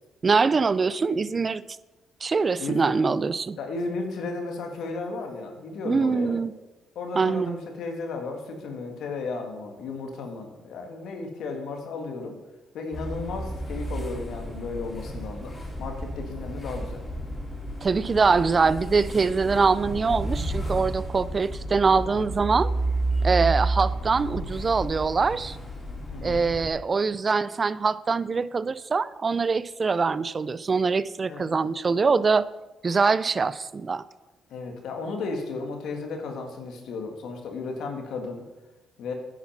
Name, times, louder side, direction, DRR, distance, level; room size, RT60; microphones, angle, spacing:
voice 1, 0.2-1.6 2.2-3.6 5.9-6.5 7.2-7.6 17.8-22.7 23.2-25.6 26.2-32.5 32.8-34.0, right 4 dB, 35° right, 18 dB, 0.5 m, -23 dB
voice 2, 3.6-6.4 7.0-12.4 12.7-17.0 26.1-26.4 31.3-31.5 34.5-38.5 39.0-39.1, left 3 dB, 75° left, 3 dB, 2.2 m, -34 dB
sound 1, 12.9-26.7, right 2 dB, 20° left, 3.8 m, -31 dB
10.0 x 8.6 x 5.9 m, 1.1 s
cardioid pair, 90°, 0 cm